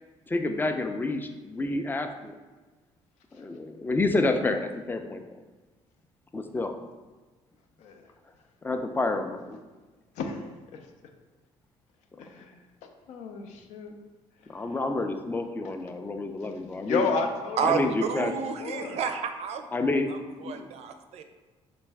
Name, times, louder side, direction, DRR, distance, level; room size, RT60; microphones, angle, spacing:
voice 1, 0.3-2.3 3.3-5.2 6.3-6.8 8.6-9.6 14.5-17.1 17.6-18.3 19.7-20.1 20.4-20.7, left 2 dB, 15° left, 6 dB, 0.4 m, -29 dB
voice 2, 12.2-12.6 13.1-13.9 16.8-17.9 18.2-18.3 18.6-19.0, left 4 dB, 80° left, 4 dB, 0.5 m, -32 dB
voice 3, 17.6-19.6 20.4-21.2, right 6 dB, 60° right, 7 dB, 0.4 m, -30 dB
3.3 x 3.1 x 3.4 m, 1.3 s
cardioid pair, 90°, 12 cm